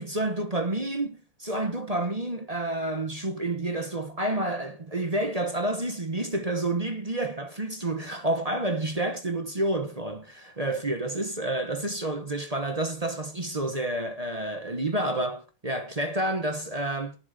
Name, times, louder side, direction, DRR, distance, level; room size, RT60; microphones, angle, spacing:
voice 1, 0.0-17.2, right 1 dB, 25° right, 0.8 m, -29 dB
11.0 x 7.6 x 7.0 m
omnidirectional pair, 2.4 m